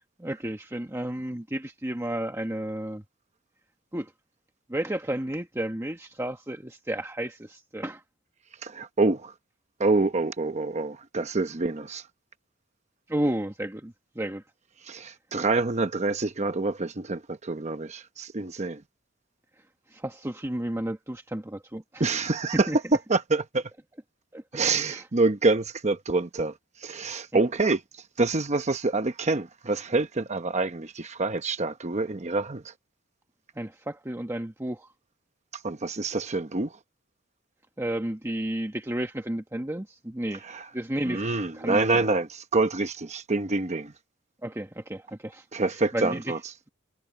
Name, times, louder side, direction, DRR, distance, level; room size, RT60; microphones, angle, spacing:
voice 1, 0.2-3.0 3.9-4.1 4.7-8.0 13.1-14.4 19.9-22.0 22.7-22.8 24.3-25.0 33.6-34.9 37.8-40.4 40.7-41.2 41.6-42.0 44.4-45.4 45.9-46.2, right 1 dB, 15° right, 1.2 m, -32 dB
voice 2, 8.6-9.3 9.8-12.1 14.8-18.8 22.0-23.7 24.5-32.7 35.5-36.8 40.4-40.7 41.0-43.9 45.5-46.5, right 3 dB, 35° right, 0.9 m, -27 dB
head